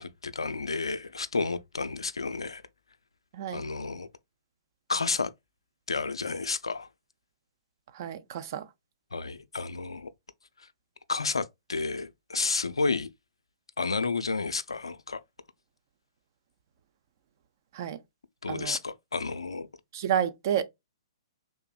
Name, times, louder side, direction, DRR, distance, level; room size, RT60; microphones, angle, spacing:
voice 1, 0.0-2.6 3.5-4.1 4.9-5.3 5.9-6.9 9.1-10.1 11.1-13.1 13.8-15.2 18.4-19.7, left 4 dB, 75° left, 0.4 m, -31 dB
voice 2, 7.9-8.7 17.7-18.0 18.5-18.8 19.9-20.6, right 9 dB, 45° right, 0.5 m, -30 dB
3.6 x 2.6 x 2.2 m
figure-of-eight pair, 120°, 3 cm